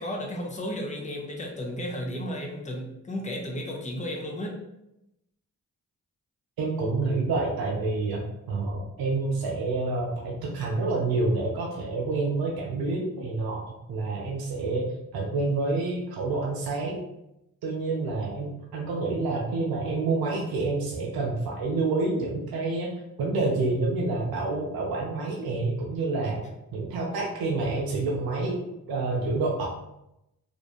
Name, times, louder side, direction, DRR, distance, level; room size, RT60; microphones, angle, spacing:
voice 1, 0.0-4.6, equal, 20° left, -1 dB, 0.7 m, -33 dB
voice 2, 6.6-8.2 8.5-14.9 15.1-17.0 17.6-22.9 23.2-26.4 26.7-29.7, right 3 dB, 65° right, -2 dB, 0.6 m, -28 dB
2.4 x 2.1 x 2.8 m, 0.86 s
supercardioid pair, 40°, 40 cm